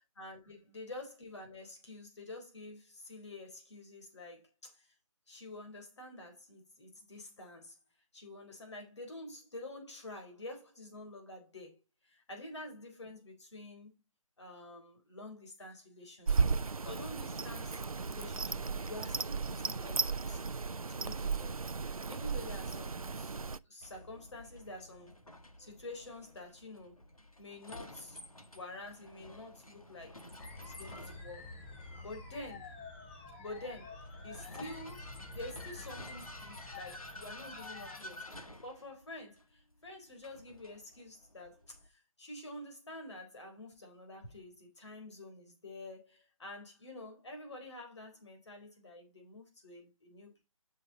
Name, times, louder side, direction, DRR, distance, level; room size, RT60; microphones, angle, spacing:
voice 1, 0.0-4.9 5.3-7.8 8.1-13.9 14.4-20.4 20.9-23.3 23.6-25.1 25.6-27.0 27.4-28.2 28.5-30.2 30.6-31.5 32.0-32.7 33.4-50.4, left 2 dB, 55° left, 3.9 m, -48 dB
sound 1, 16.3-23.6, right 5 dB, 85° right, 0.5 m, -35 dB
Vehicle, 23.8-41.9, left 1 dB, 90° left, 1.5 m, -52 dB
sound 2, 30.4-38.0, left 3 dB, 20° left, 1.4 m, -49 dB
7.6 x 6.1 x 4.1 m
figure-of-eight pair, 150°, 18 cm